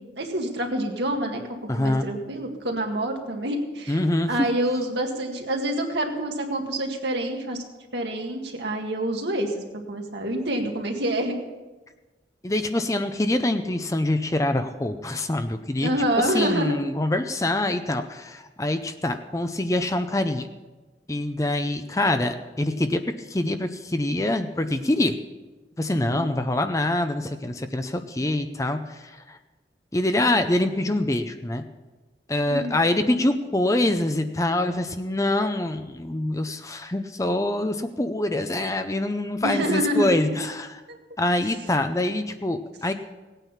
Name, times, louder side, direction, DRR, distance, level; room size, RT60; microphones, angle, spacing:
voice 1, 0.0-1.4 1.8-4.0 4.3-7.6 7.9-11.4 15.8-16.9 26.1-26.3 32.5-32.8 39.4-40.4, right 1 dB, 70° right, 2 dB, 1.9 m, -27 dB
voice 2, 1.7-2.1 3.9-4.5 12.4-15.9 16.2-20.5 21.1-25.2 25.8-29.4 29.9-31.6 32.3-40.8 41.2-42.9, left 1 dB, 15° left, 8 dB, 0.5 m, -25 dB
17.5 x 9.1 x 5.7 m, 1.2 s
head